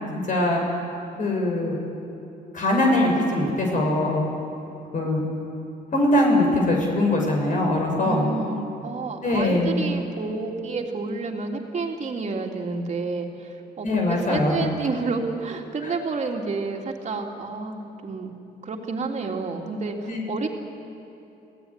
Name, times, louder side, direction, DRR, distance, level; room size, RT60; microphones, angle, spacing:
voice 1, 0.1-0.6 1.2-1.8 2.5-4.2 4.9-5.2 5.9-8.3 9.2-9.8 13.8-14.7 20.0-20.2, left 1 dB, 50° left, 0 dB, 6.4 m, -22 dB
voice 2, 8.0-18.3 18.6-20.5, right 4 dB, 45° right, 2 dB, 3.3 m, -30 dB
29.5 x 18.0 x 9.9 m, 3.0 s
cardioid pair, 110°, 17 cm